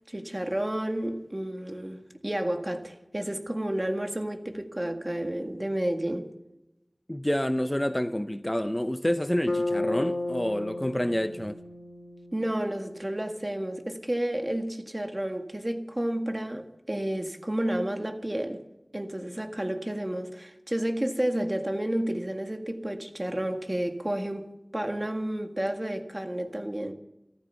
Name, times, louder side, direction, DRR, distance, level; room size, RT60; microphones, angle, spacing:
voice 1, 0.1-6.3 12.3-18.6 18.9-26.9, right 1 dB, 30° right, 1.8 m, -31 dB
voice 2, 7.1-11.6, left 1 dB, 20° left, 0.7 m, -28 dB
Bass guitar, 9.5-13.5, left 2 dB, 85° left, 1.9 m, -34 dB
14.5 x 13.5 x 7.0 m
wide cardioid pair, 45°, 0 cm